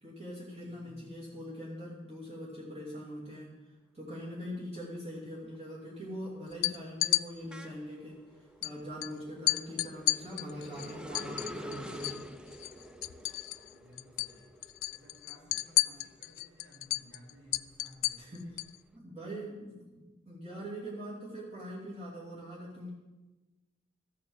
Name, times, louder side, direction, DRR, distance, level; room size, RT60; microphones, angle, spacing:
voice 1, 0.0-3.6 3.9-8.2 8.6-12.2 18.2-18.6 18.9-22.9, equal, 30° right, -7 dB, 2.9 m, -42 dB
voice 2, 0.8-1.1 13.5-14.5 14.9-18.3, equal, 75° right, -3 dB, 4.7 m, -57 dB
sound 1, 4.6-5.0 5.4-16.6 17.1-18.8, equal, 5° right, 0.6 m, -48 dB
sound 2, 6.5-7.2 8.6-8.7 9.0-9.1 9.5-12.2 12.5-13.7 14.0-14.3 14.6-18.8, left 18 dB, 70° left, 0.4 m, -31 dB
14.0 x 6.6 x 7.2 m, 1.1 s
head